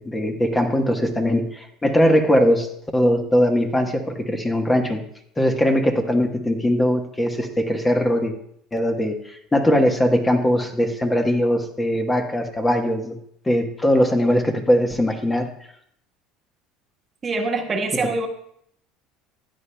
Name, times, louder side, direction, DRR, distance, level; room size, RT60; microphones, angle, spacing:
voice 1, 0.0-2.7 2.9-5.0 5.4-8.3 8.7-13.2 13.4-15.5, equal, 15° left, 4 dB, 1.3 m, -20 dB
voice 2, 17.2-18.3, right 3 dB, 30° right, 4 dB, 1.4 m, -24 dB
15.0 x 9.9 x 2.3 m, 0.69 s
supercardioid pair, 100°, 0 cm